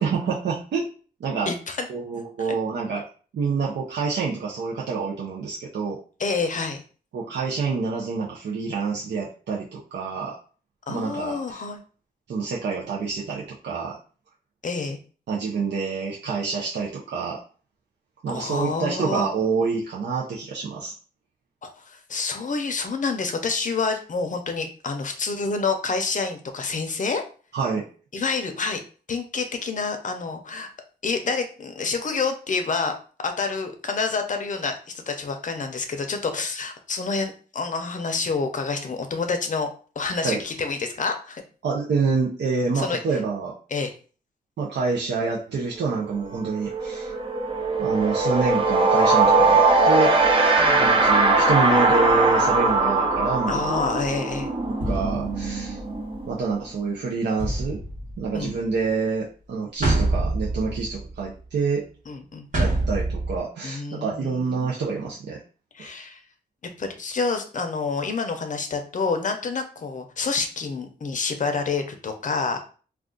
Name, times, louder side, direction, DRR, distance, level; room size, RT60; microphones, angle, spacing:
voice 1, 0.0-0.9 1.2-1.5 1.9-3.0 3.3-6.0 7.1-10.4 10.9-11.6 12.3-14.0 15.3-17.4 18.2-20.9 27.5-27.9 40.2-40.4 41.6-43.6 44.6-47.1 47.8-50.1 50.8-53.6 54.9-55.8 56.3-57.8 58.2-61.8 62.6-65.4 65.8-65.9, right 4 dB, 85° right, -4 dB, 0.5 m, -27 dB
voice 2, 1.5-1.9 2.4-2.5 6.2-6.8 10.9-11.8 14.6-15.0 18.3-19.3 21.6-27.2 28.1-28.8 29.1-30.7 31.0-32.9 33.2-39.7 40.0-41.4 42.7-43.0 43.7-43.9 50.6-50.8 53.5-54.5 58.3-58.5 62.1-62.5 63.6-64.7 65.7-66.2 66.8-72.6, left 4 dB, 45° left, 5 dB, 0.6 m, -28 dB
sound 1, 45.9-46.1 46.4-56.9, right 3 dB, 30° right, 0.5 m, -21 dB
sound 2, 53.9-54.1 54.8-56.2 57.4-58.8 59.8-61.3 62.5-63.4, right 2 dB, 50° right, 1.2 m, -27 dB
2.4 x 2.3 x 3.7 m, 0.39 s
wide cardioid pair, 115°, 17 cm